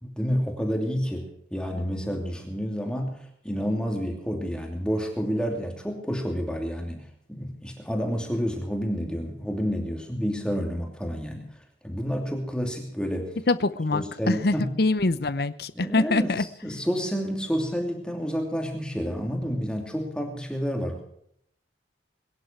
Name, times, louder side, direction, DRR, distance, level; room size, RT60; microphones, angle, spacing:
voice 1, 0.0-13.4 13.9-14.8 15.7-21.0, equal, 5° left, 1 dB, 2.8 m, -29 dB
voice 2, 13.5-16.4, left 2 dB, 55° left, 14 dB, 0.7 m, -24 dB
22.5 x 11.0 x 4.6 m, 0.69 s
head